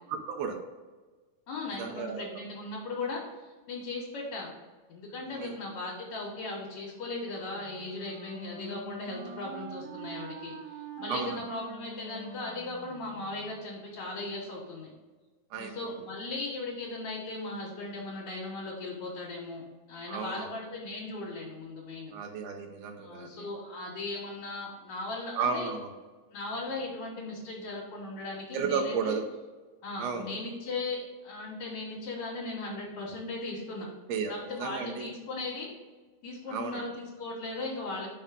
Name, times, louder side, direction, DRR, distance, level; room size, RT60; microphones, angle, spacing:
voice 1, 0.1-0.6 1.8-2.4 5.3-5.6 11.1-11.4 15.5-15.7 20.1-20.6 22.1-23.5 25.3-25.9 28.5-29.3 30.0-30.3 34.1-34.3 34.6-35.1 36.5-36.8, right 6 dB, 70° right, 3 dB, 1.7 m, -33 dB
voice 2, 1.5-4.5 4.9-14.9 15.6-22.1 23.0-25.7 26.3-29.1 29.8-31.0 31.2-33.9 34.3-35.7 36.2-38.1, left 2 dB, 65° left, -5 dB, 2.8 m, -38 dB
Wind instrument woodwind instrument, 7.5-13.7, right 5 dB, 45° right, 1.8 m, -44 dB
5.5 x 5.4 x 5.2 m, 1.3 s
omnidirectional pair, 3.5 m